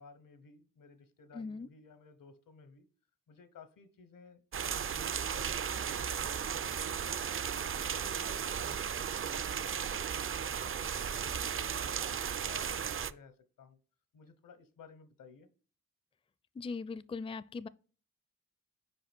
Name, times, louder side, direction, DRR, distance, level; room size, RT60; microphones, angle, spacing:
voice 1, 0.0-2.9 3.3-7.0 7.5-13.8 14.1-15.5, left 5 dB, 80° left, 1.1 m, -57 dB
voice 2, 1.3-1.7 16.5-17.7, left 4 dB, 15° left, 0.4 m, -40 dB
sound 1, 4.5-13.1, right 7 dB, 40° right, 0.4 m, -35 dB
5.1 x 4.7 x 4.4 m
cardioid pair, 45°, 33 cm